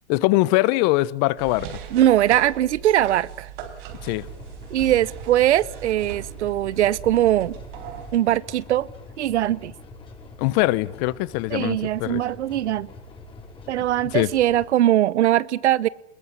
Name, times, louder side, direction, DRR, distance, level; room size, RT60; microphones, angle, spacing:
voice 1, 0.1-1.8 4.0-4.3 10.4-12.2 14.1-14.3, left 19 dB, 40° left, 1.0 m, -22 dB
sound 1, 1.4-8.2, right 9 dB, 50° right, 4.5 m, -39 dB
voice 2, 1.9-3.5 4.7-7.6 8.1-8.9 9.2-9.7 11.5-12.9 13.7-15.9, right 12 dB, 80° right, 1.1 m, -21 dB
sound 2, 3.9-14.7, left 3 dB, 15° left, 5.2 m, -44 dB
22.5 x 21.5 x 9.8 m
supercardioid pair, 145°, 34 cm